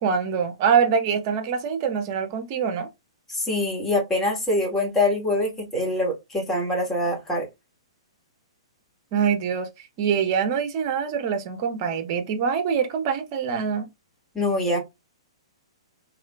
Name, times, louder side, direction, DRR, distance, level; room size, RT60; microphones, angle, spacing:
voice 1, 0.0-2.9 9.1-13.9, right 7 dB, 35° right, 1.0 m, -24 dB
voice 2, 3.3-7.5 14.3-14.8, left 1 dB, 10° left, 1.8 m, -24 dB
3.4 x 3.3 x 2.4 m
figure-of-eight pair, 115°, 3 cm